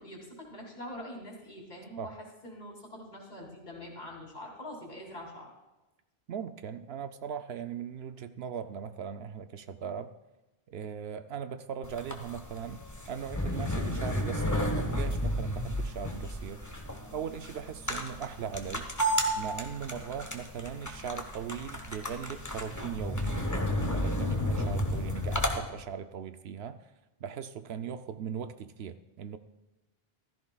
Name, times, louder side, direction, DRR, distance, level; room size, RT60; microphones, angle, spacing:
voice 1, 0.0-2.2 2.4-5.5, left 1 dB, 45° left, -1 dB, 3.1 m, -44 dB
voice 2, 6.3-10.1 10.7-16.6 17.1-18.9 19.4-23.4 23.7-26.8 27.2-29.4, right 7 dB, 75° right, 10 dB, 0.8 m, -39 dB
sound 1, 11.8-25.6, equal, 15° left, 1.1 m, -32 dB
15.5 x 13.5 x 2.3 m, 1.0 s
omnidirectional pair, 1.1 m